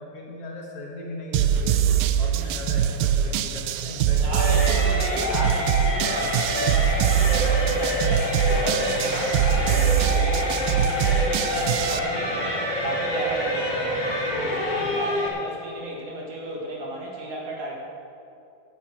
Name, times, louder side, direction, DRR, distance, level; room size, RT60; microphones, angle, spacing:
voice 1, 0.0-1.8 2.2-4.9 9.0-9.2 14.8-15.0, left 2 dB, 55° left, -2 dB, 2.1 m, -38 dB
sound 1, 1.3-12.0, right 9 dB, 90° right, 2.1 m, -23 dB
voice 2, 3.9-17.7, right 1 dB, 55° right, -3 dB, 2.7 m, -34 dB
sound 2, 4.4-15.3, left 1 dB, 35° left, 0.7 m, -27 dB
10.0 x 7.3 x 8.4 m, 2.6 s
omnidirectional pair, 3.5 m